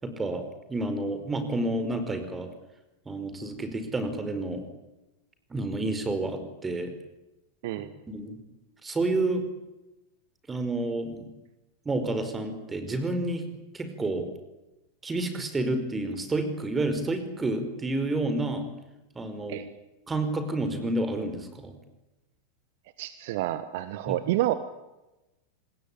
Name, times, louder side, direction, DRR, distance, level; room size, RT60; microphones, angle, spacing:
voice 1, 0.0-2.5 3.0-4.6 5.5-6.9 8.1-8.4 8.8-9.4 10.5-11.3 11.8-13.4 13.7-14.3 15.0-18.7 19.1-19.6 20.1-21.7 24.1-24.2, right 2 dB, 15° right, 9 dB, 5.0 m, -29 dB
voice 2, 23.0-24.5, right 15 dB, 50° right, 13 dB, 1.4 m, -29 dB
27.5 x 20.5 x 8.6 m, 1.0 s
figure-of-eight pair, 90°, 0 cm